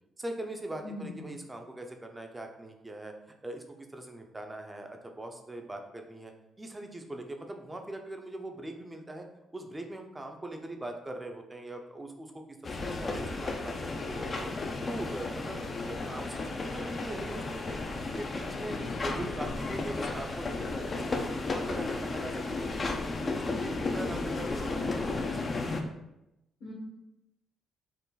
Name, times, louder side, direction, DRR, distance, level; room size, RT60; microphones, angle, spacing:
voice 1, 0.2-3.1 3.4-9.3 9.5-14.5 14.9-15.6 15.9-22.9 23.2-25.1, right 1 dB, 15° right, 4 dB, 0.6 m, -41 dB
voice 2, 0.8-1.3 26.6-26.7, left 2 dB, 70° left, -4 dB, 1.3 m, -41 dB
sound 1, 12.6-25.8, left 3 dB, 40° left, 0.5 m, -34 dB
4.5 x 2.5 x 4.0 m, 0.91 s
cardioid pair, 90°, 0 cm